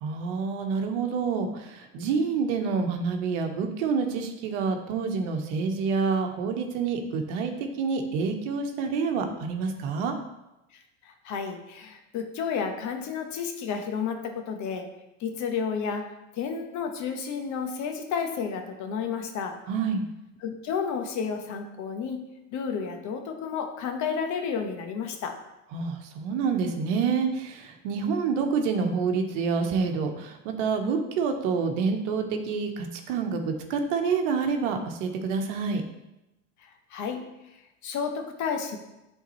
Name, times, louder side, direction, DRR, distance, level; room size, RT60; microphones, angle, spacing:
voice 1, 0.0-10.2 19.7-20.0 25.7-35.8, right 5 dB, 70° right, 5 dB, 1.0 m, -27 dB
voice 2, 10.7-14.9 15.2-16.1 16.3-19.6 20.4-25.3 36.6-38.8, left 6 dB, 50° left, 5 dB, 1.1 m, -32 dB
8.1 x 3.8 x 3.0 m, 0.94 s
hypercardioid pair, 95°, 38 cm